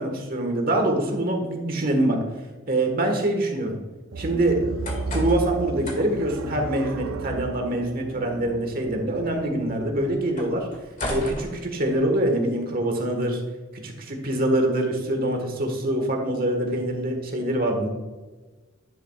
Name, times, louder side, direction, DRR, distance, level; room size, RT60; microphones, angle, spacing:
voice 1, 0.0-2.2 2.7-3.8 4.2-4.6 5.1-10.7 11.1-13.4 13.7-17.9, right 1 dB, 45° right, 3 dB, 1.6 m, -24 dB
sound 1, 4.1-10.4, right 4 dB, 85° right, 0.5 m, -34 dB
sound 2, 4.5-12.3, left 1 dB, 40° left, 2.1 m, -38 dB
10.5 x 7.6 x 2.4 m, 1.2 s
head